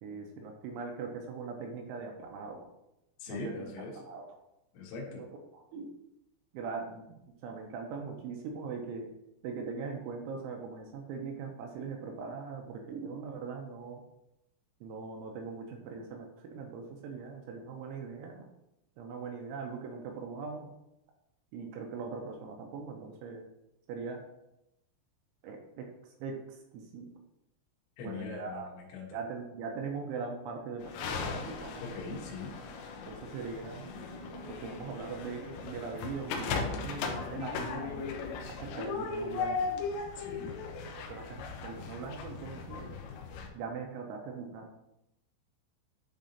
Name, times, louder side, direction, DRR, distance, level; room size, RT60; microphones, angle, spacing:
voice 1, 0.0-2.7 3.3-3.6 4.0-4.3 5.5-5.9 6.5-9.1 9.4-14.0 14.8-18.5 19.0-20.7 21.5-23.4 23.9-24.2 25.4-27.1 28.0-28.7 29.1-31.8 33.1-33.9 34.4-37.8 38.5-39.7 41.0-43.0 43.5-44.7, right 5 dB, 85° right, 3 dB, 2.9 m, -41 dB
voice 2, 3.2-4.0 4.7-5.2 28.0-29.2 31.8-32.5 40.2-40.5, left 3 dB, 70° left, -3 dB, 3.3 m, -41 dB
sound 1, 30.8-43.5, left 4 dB, 85° left, 2.5 m, -38 dB
10.0 x 3.6 x 2.7 m, 0.87 s
omnidirectional pair, 5.9 m